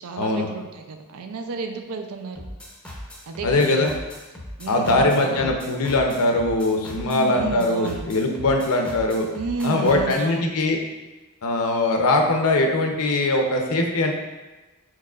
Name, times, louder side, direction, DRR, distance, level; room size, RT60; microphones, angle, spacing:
voice 1, 0.0-2.5 3.3-3.9 4.6-5.6 7.0-8.1 9.3-10.6, right 4 dB, 75° right, 5 dB, 0.5 m, -32 dB
sound 1, 2.4-10.3, left 1 dB, 5° left, 0.6 m, -39 dB
voice 2, 3.4-3.9 4.7-9.3 9.6-10.8 11.4-14.1, left 2 dB, 75° left, 2 dB, 0.6 m, -21 dB
4.7 x 4.2 x 2.4 m, 1.2 s
head